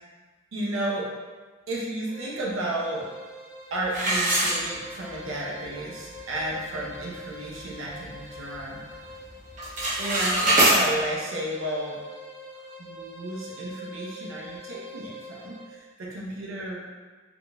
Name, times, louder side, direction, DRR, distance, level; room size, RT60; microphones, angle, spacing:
voice 1, 0.5-1.1 1.7-3.1 3.7-8.8 10.0-12.0 12.8-16.8, right 1 dB, 80° right, -4 dB, 0.6 m, -32 dB
sound 1, 2.1-15.7, equal, 60° left, 0.8 m, -44 dB
sound 2, 3.9-5.2 5.6-5.7 6.3-6.4 6.8-7.1 7.5-8.6 8.9-9.2 9.5-10.8, right 1 dB, 40° right, 0.6 m, -24 dB
3.6 x 2.5 x 2.2 m, 1.4 s
head